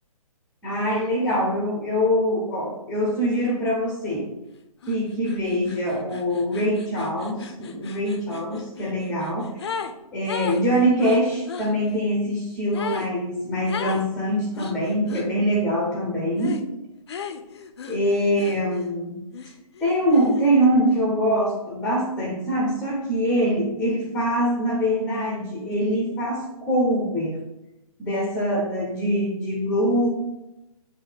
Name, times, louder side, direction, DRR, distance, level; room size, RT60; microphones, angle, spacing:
voice 1, 0.6-4.3 4.9-9.7 10.1-16.6 17.9-19.2 19.8-27.4 28.0-30.1, equal, 5° left, -2 dB, 0.7 m, -23 dB
sound 1, 4.8-5.0 5.3-10.0 10.3-11.7 12.7-13.1 13.7-14.1 14.6-15.3 16.4-16.7 17.1-18.9 19.3-20.7, left 6 dB, 45° left, 0.6 m, -36 dB
7.8 x 2.7 x 4.9 m, 0.91 s
hypercardioid pair, 165°, 19 cm